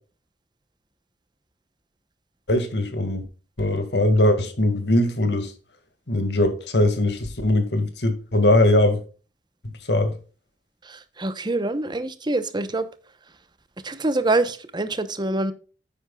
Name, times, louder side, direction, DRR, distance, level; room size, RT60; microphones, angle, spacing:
voice 1, 2.5-3.2 3.6-5.5 6.1-9.0 9.9-10.2, left 1 dB, 70° left, 2.0 m, -20 dB
voice 2, 10.8-12.9 13.8-15.5, right 2 dB, 25° right, 0.9 m, -25 dB
9.8 x 8.7 x 2.3 m
head